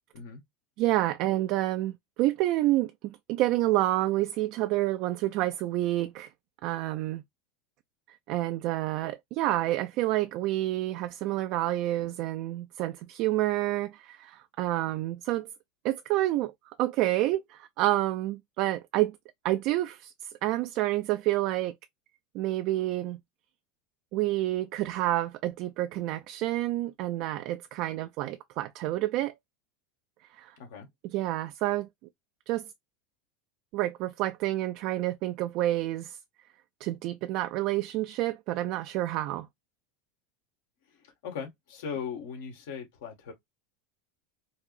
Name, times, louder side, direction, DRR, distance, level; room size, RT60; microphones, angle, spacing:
voice 1, 0.8-6.3 6.6-7.2 8.3-15.5 15.8-16.5 16.8-19.2 19.4-20.1 20.4-21.7 22.3-23.2 24.1-29.3 30.4-30.5 31.1-31.9 32.5-32.7 33.7-36.2 36.8-39.5, right 16 dB, 55° right, 0.3 m, -28 dB
voice 2, 30.6-30.9 41.0-43.3, left 6 dB, 80° left, 1.5 m, -39 dB
4.4 x 2.0 x 2.4 m
supercardioid pair, 135°, 0 cm